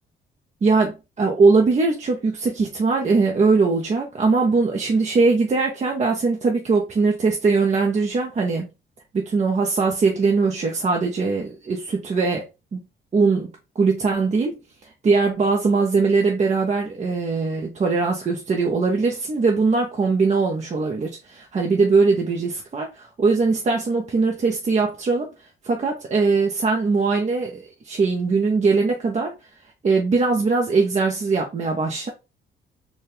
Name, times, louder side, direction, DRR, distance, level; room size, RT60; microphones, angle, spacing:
voice 1, 0.6-8.7 9.1-12.4 12.7-12.8 13.1-14.6 15.0-25.3 25.6-29.3 29.8-32.1, right 4 dB, 35° right, 0.8 m, -21 dB
4.1 x 2.4 x 3.4 m
cardioid pair, 90°, 20 cm